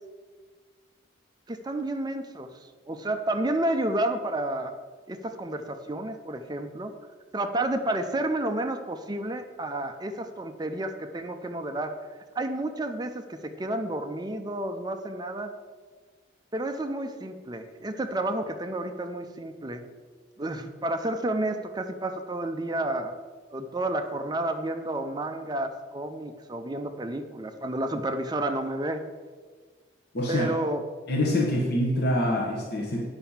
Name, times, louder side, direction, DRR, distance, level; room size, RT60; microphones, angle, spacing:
voice 1, 1.5-2.5 2.9-4.7 5.1-6.9 7.3-12.0 12.4-15.5 16.5-19.8 20.4-23.1 23.5-29.0 30.3-30.8, right 1 dB, 20° right, 7 dB, 0.5 m, -30 dB
voice 2, 30.1-30.5 31.1-33.0, left 1 dB, 55° left, -1 dB, 1.3 m, -25 dB
9.0 x 5.7 x 7.0 m, 1.5 s
head